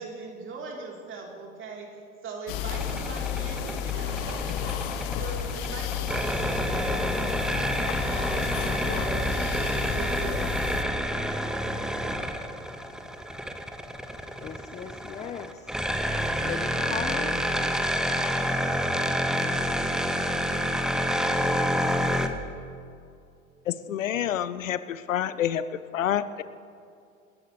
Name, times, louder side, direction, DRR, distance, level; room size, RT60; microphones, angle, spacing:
voice 1, 0.0-11.5, right 3 dB, 30° right, -1 dB, 3.7 m, -40 dB
sound 1, 2.5-10.8, left 9 dB, 45° left, 1.1 m, -32 dB
sound 2, 2.7-22.3, equal, ahead, 0.8 m, -28 dB
voice 2, 14.0-15.8 16.4-17.4, left 8 dB, 15° left, 8 dB, 0.5 m, -38 dB
voice 3, 23.7-25.6 25.9-26.4, left 10 dB, 65° left, 15 dB, 0.7 m, -28 dB
27.0 x 14.0 x 3.3 m, 2.5 s
figure-of-eight pair, 80°, 42 cm